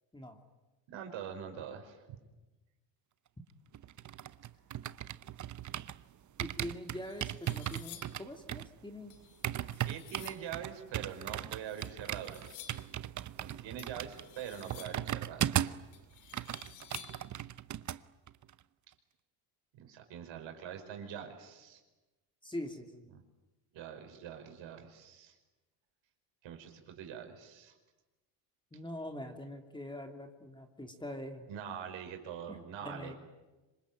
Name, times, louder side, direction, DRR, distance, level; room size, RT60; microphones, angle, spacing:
voice 1, 0.9-2.2 9.8-12.8 13.4-15.8 19.7-21.8 23.1-23.2 23.7-25.3 26.4-27.7 31.5-33.1, right 8 dB, 60° right, 4 dB, 5.5 m, -44 dB
sound 1, 3.7-6.0 6.4-15.9 16.2-18.0 18.3-18.5, right 11 dB, 35° right, 0.9 m, -37 dB
sound 2, 6.4-6.5 6.9-8.3 9.1-10.5 11.5-13.0 13.8-15.2 15.9-17.3, left 13 dB, 80° left, 2.6 m, -53 dB
voice 2, 6.4-9.2 22.4-23.0 28.7-31.5 32.5-33.1, left 1 dB, 10° left, 4 dB, 3.0 m, -43 dB
26.5 x 24.0 x 9.1 m, 1.1 s
supercardioid pair, 100°, 50 cm